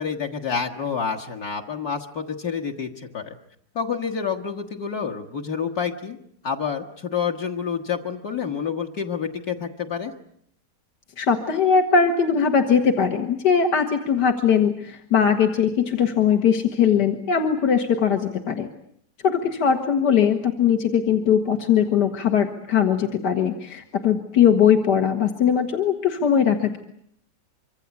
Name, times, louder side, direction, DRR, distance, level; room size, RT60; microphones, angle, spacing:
voice 1, 0.0-3.4 3.8-6.2 6.4-10.1, left 6 dB, 65° left, 2 dB, 2.0 m, -28 dB
voice 2, 11.2-18.7 19.2-26.8, left 7 dB, 85° left, 4 dB, 2.3 m, -20 dB
25.0 x 25.0 x 8.3 m, 0.70 s
omnidirectional pair, 1.8 m